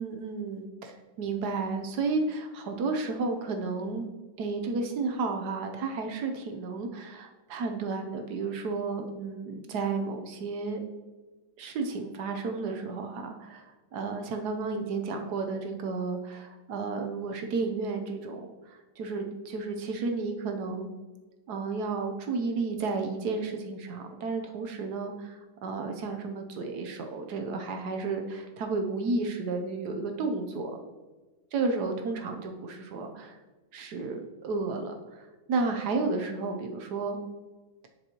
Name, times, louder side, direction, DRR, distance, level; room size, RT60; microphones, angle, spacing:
voice 1, 0.0-4.1 4.4-10.8 11.6-13.7 13.9-20.9 21.5-30.8 31.5-33.4 33.7-37.2, right 4 dB, 65° right, 4 dB, 1.2 m, -32 dB
7.8 x 6.2 x 2.9 m, 1.2 s
omnidirectional pair, 2.0 m